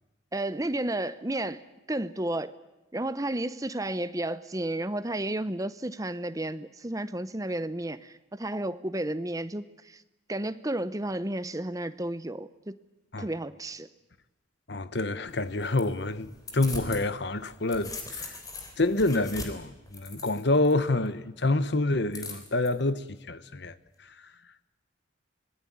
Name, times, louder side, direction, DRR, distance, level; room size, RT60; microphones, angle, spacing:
voice 1, 0.3-1.6 1.9-2.5 2.9-10.0 10.3-12.8 13.2-13.9, right 1 dB, 15° right, 0.8 m, -32 dB
voice 2, 14.7-18.4 18.8-23.7, left 2 dB, 55° left, 1.1 m, -27 dB
sound 1, 15.3-17.0 17.4-20.7 22.1-22.7, left 3 dB, 20° left, 3.6 m, -41 dB
25.5 x 20.0 x 8.8 m
head